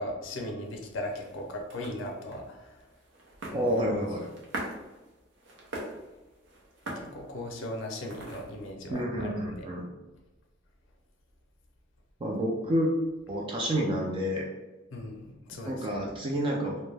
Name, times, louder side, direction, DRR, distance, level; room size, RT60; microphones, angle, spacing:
voice 1, 0.0-2.8 3.5-3.7 7.0-9.7 14.9-16.1, left 1 dB, 85° left, 1 dB, 0.5 m, -38 dB
sound 1, 0.6-8.7, right 1 dB, 70° right, 0.6 m, -44 dB
voice 2, 3.5-4.3 8.9-9.9 12.2-12.9 13.3-14.5 15.7-16.8, equal, 25° right, -2 dB, 0.3 m, -29 dB
2.2 x 2.1 x 3.1 m, 1.1 s
head